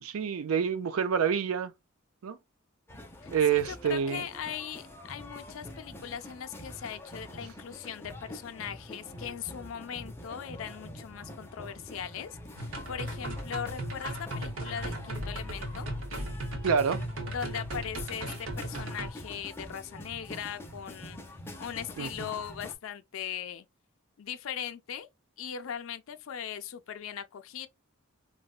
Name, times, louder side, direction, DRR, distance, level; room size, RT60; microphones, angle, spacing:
voice 1, 0.0-1.7 2.2-2.4 3.3-4.2 16.6-17.0 22.0-22.1, right 7 dB, 85° right, 0.4 m, -27 dB
sound 1, 2.9-22.7, left 1 dB, 10° left, 0.5 m, -45 dB
voice 2, 3.2-15.9 17.3-21.2 21.6-23.7 24.2-25.1 25.4-27.7, left 8 dB, 70° left, 0.4 m, -39 dB
sound 2, 12.6-19.1, right 1 dB, 70° right, 0.9 m, -37 dB
3.9 x 2.1 x 2.3 m
head